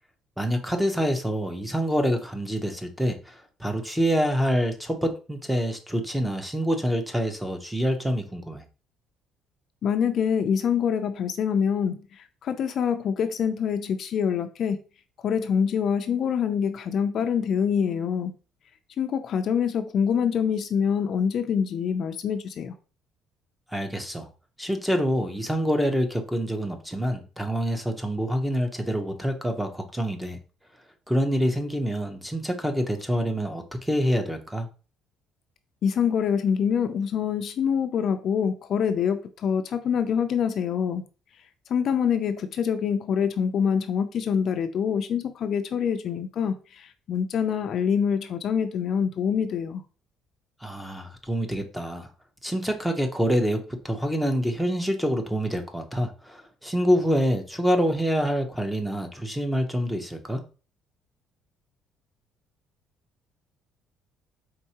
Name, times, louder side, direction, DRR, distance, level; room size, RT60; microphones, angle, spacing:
voice 1, 0.4-8.6 23.7-24.3 24.6-30.4 31.1-34.7 50.6-52.1 52.4-60.4, equal, 5° right, 0.6 m, -26 dB
voice 2, 9.8-14.8 15.2-18.3 19.0-22.7 35.8-41.0 41.7-49.8, left 7 dB, 45° left, 0.4 m, -25 dB
4.5 x 3.5 x 2.8 m
cardioid pair, 155°, 0 cm